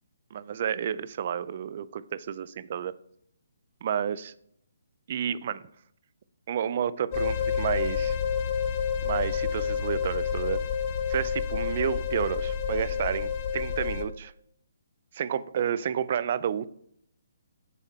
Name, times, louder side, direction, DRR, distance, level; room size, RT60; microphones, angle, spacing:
voice 1, 0.3-2.9 3.8-4.3 5.1-5.6 6.5-8.2 9.0-10.6 11.1-14.3 15.1-16.7, right 9 dB, 45° right, 17 dB, 0.3 m, -30 dB
sound 1, 7.1-14.0, left 7 dB, 30° left, 0.7 m, -29 dB
8.1 x 3.7 x 4.2 m, 0.69 s
hypercardioid pair, 155°, 0 cm